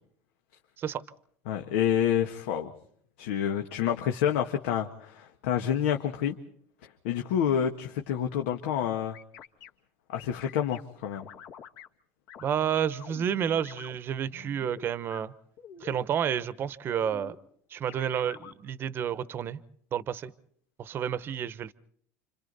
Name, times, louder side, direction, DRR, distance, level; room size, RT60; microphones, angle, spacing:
voice 1, 1.5-2.7 3.2-6.4 7.0-9.2 10.1-11.3, left 9 dB, 90° left, 3 dB, 1.5 m, -28 dB
sound 1, 9.1-9.7 10.2-10.8 11.1-11.9 12.3-12.5 12.7-14.0 14.3-15.2 15.6-16.0 16.3-16.4 16.9-17.4 17.9-18.5, left 8 dB, 60° left, 1.8 m, -47 dB
voice 2, 12.4-15.3 15.8-17.3 17.7-19.6 19.9-20.3 20.8-21.7, right 9 dB, 35° right, 16 dB, 0.9 m, -30 dB
30.0 x 26.5 x 4.1 m, 0.63 s
cardioid pair, 145°, 7 cm